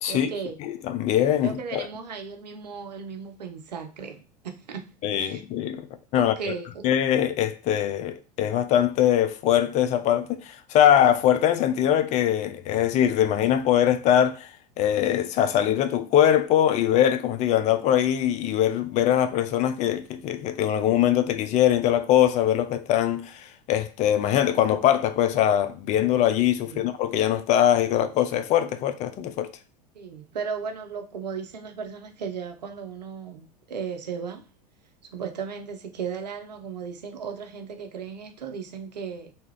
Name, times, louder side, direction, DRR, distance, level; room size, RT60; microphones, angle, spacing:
voice 1, 0.1-0.6 1.4-4.9 5.2-5.4 6.2-6.8 26.6-26.9 29.9-34.4 35.1-39.3, right 6 dB, 80° right, 0.6 m, -36 dB
voice 2, 0.6-1.9 5.0-5.9 6.1-6.5 6.8-14.5 14.8-29.5, left 10 dB, 35° left, 0.4 m, -22 dB
2.7 x 2.4 x 3.1 m
figure-of-eight pair, 80°, 21 cm